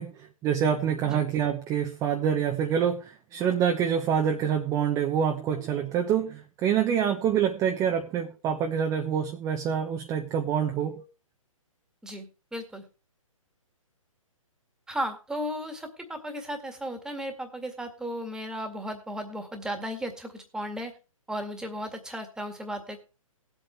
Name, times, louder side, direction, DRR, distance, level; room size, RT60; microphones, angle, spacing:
voice 1, 0.0-11.0, right 8 dB, 20° right, 3 dB, 1.0 m, -26 dB
voice 2, 12.0-12.8 14.9-20.9 21.3-23.0, equal, 5° right, 6 dB, 2.0 m, -35 dB
18.5 x 8.2 x 3.3 m, 0.33 s
hypercardioid pair, 135°, 18 cm